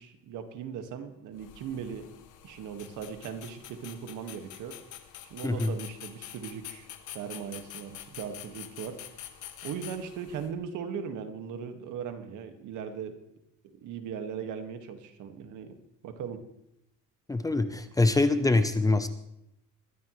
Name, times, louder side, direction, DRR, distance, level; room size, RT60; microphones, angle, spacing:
voice 1, 0.0-2.1 2.4-4.8 5.3-6.9 7.1-9.0 9.6-13.2 13.7-15.8 16.0-16.4, right 7 dB, 75° right, 7 dB, 1.9 m, -38 dB
sound 1, 1.4-10.5, left 11 dB, 75° left, 1.5 m, -47 dB
voice 2, 5.4-5.8 17.3-19.1, left 2 dB, 10° left, 10 dB, 0.7 m, -24 dB
21.5 x 14.0 x 3.2 m, 0.80 s
cardioid pair, 145°, 31 cm